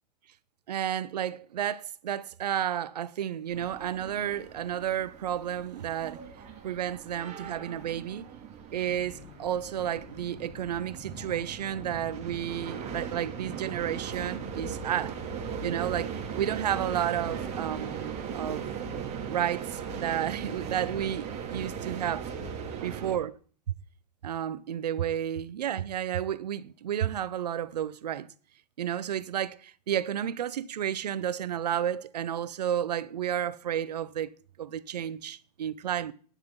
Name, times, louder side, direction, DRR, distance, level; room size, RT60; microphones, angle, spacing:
voice 1, 0.7-6.2 6.6-8.3 8.7-15.2 15.6-18.6 19.3-22.3 22.8-23.4 24.2-28.3 28.8-34.3 34.6-36.1, right 10 dB, 80° right, 0.7 m, -32 dB
sound 1, 3.5-23.1, right 7 dB, 30° right, 2.5 m, -38 dB
sound 2, 8.8-19.5, left 10 dB, 45° left, 1.4 m, -51 dB
12.5 x 10.0 x 3.8 m
hypercardioid pair, 110°, 21 cm